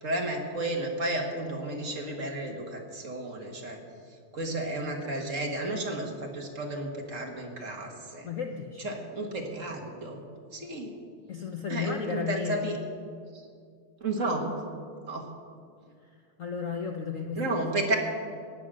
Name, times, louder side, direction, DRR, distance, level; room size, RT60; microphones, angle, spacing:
voice 1, 0.0-3.8 4.3-8.3 8.8-10.2 10.5-10.9 11.7-12.8 13.3-13.4 14.0-14.5 15.1-15.3 17.4-18.0, right 2 dB, 40° right, 1 dB, 1.7 m, -32 dB
voice 2, 8.2-8.9 11.3-12.7 16.4-17.7, left 6 dB, 85° left, 4 dB, 0.7 m, -34 dB
16.5 x 9.7 x 6.2 m, 2.2 s
omnidirectional pair, 2.4 m